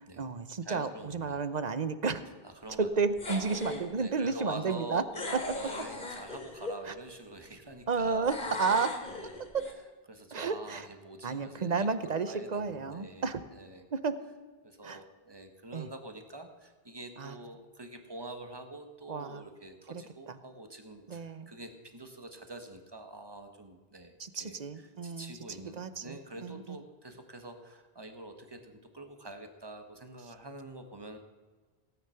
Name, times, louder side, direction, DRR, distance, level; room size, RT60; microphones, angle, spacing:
voice 1, 0.0-2.2 2.8-5.0 5.3-5.4 6.8-6.9 7.9-8.9 9.5-9.6 10.3-10.9 11.2-13.4 13.9-14.1 14.8-15.0 15.7-15.9 17.2-17.4 19.1-19.5 19.9-20.4 21.1-21.5 24.2-25.3 25.7-26.8, right 5 dB, 45° right, 12 dB, 0.9 m, -32 dB
voice 2, 0.6-1.4 2.4-2.9 3.3-8.3 9.0-9.3 10.1-11.9 12.3-13.8 14.6-31.2, right 2 dB, 25° right, 6 dB, 1.5 m, -46 dB
sound 1, 3.2-3.9 5.1-6.8 8.2-9.7, left 2 dB, 55° left, 2.8 m, -38 dB
17.0 x 9.4 x 5.8 m, 1.4 s
omnidirectional pair, 1.0 m